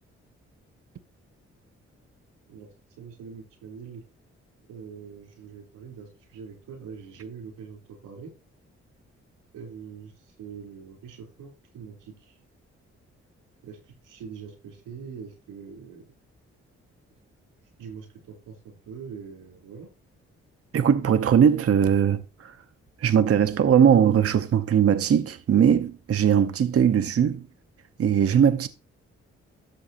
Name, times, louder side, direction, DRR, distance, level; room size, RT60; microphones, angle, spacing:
voice 1, 3.0-4.0 4.7-8.3 9.5-12.4 13.6-16.1 17.8-19.9, right 6 dB, 85° right, 3.7 m, -43 dB
voice 2, 20.7-22.6 23.0-27.5 28.0-28.7, right 8 dB, 45° right, 0.8 m, -20 dB
13.0 x 6.5 x 2.9 m
hypercardioid pair, 45°, 31 cm